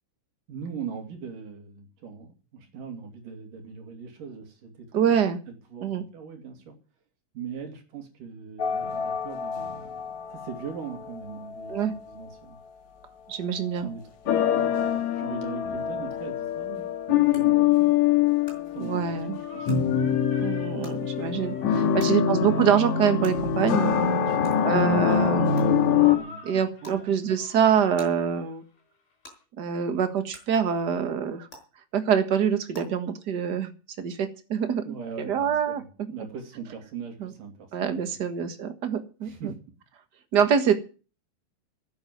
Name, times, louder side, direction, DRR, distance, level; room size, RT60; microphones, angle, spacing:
voice 1, 0.5-5.1 5.5-6.8 7.3-9.9 10.3-12.6 13.8-18.0 18.7-19.8 21.8-22.3 24.3-25.2 26.0-27.2 34.8-38.5 39.2-39.6, right 6 dB, 75° right, 3 dB, 4.5 m, -40 dB
voice 2, 4.9-5.4 5.8-6.0 11.7-11.9 13.3-13.9 18.8-19.4 20.4-23.9 24.6-25.5 26.4-28.6 29.6-31.5 31.9-33.7 34.0-35.0 35.3-36.1 37.2-37.3 37.7-39.5 40.3-40.7, right 7 dB, 40° right, 8 dB, 1.6 m, -25 dB
sound 1, 8.6-12.3 14.3-26.2, left 8 dB, 65° left, 2.8 m, -25 dB
sound 2, 16.1-16.2 17.3-17.4 18.4-18.5 19.6-19.7 20.8-20.9 22.0-22.1 23.2-23.3 24.4-24.6 25.6-25.7 26.8-27.0 28.0-28.1 29.2-29.3 30.3-30.4 31.5-31.6 32.7-32.8, left 1 dB, 20° left, 6.4 m, -45 dB
sound 3, 19.3-28.8, left 1 dB, 80° left, 4.9 m, -49 dB
11.5 x 9.6 x 9.3 m, 0.36 s
omnidirectional pair, 3.8 m